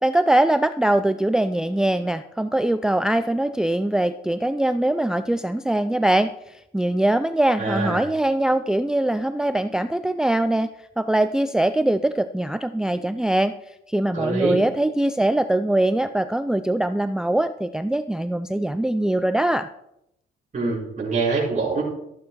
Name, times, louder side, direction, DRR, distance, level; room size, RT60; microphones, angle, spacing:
voice 1, 0.0-10.7 11.0-19.7, right 1 dB, 5° right, 11 dB, 0.4 m, -22 dB
voice 2, 7.6-8.0 14.1-14.6 20.5-21.8, right 3 dB, 40° right, -7 dB, 4.8 m, -24 dB
14.0 x 8.5 x 4.7 m, 0.81 s
cardioid pair, 90°, 20 cm